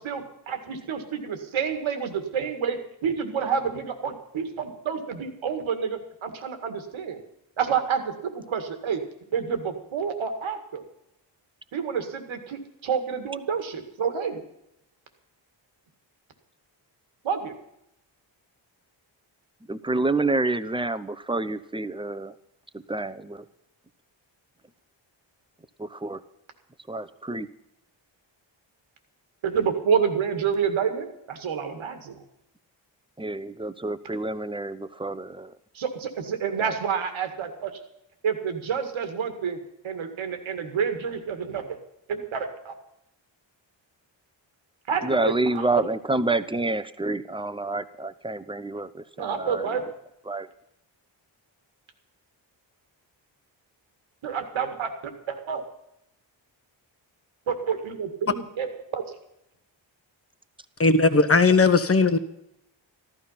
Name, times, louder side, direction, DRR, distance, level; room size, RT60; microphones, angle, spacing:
voice 1, 0.0-7.2 7.6-9.0 9.3-10.8 11.7-14.4 17.2-17.6 29.4-32.2 35.7-37.7 38.2-39.6 39.8-41.8 42.1-42.7 44.9-45.8 49.2-49.9 54.2-55.6 57.5-59.0, right 6 dB, 85° right, 6 dB, 2.1 m, -29 dB
voice 2, 19.7-22.3 22.9-23.4 25.8-26.2 26.9-27.5 33.2-35.5 36.6-36.7 45.0-49.7 50.3-50.5, right 2 dB, 10° right, 13 dB, 0.8 m, -28 dB
voice 3, 60.8-62.2, left 3 dB, 30° left, 10 dB, 1.3 m, -18 dB
14.0 x 12.5 x 5.8 m, 0.82 s
cardioid pair, 75°, 46 cm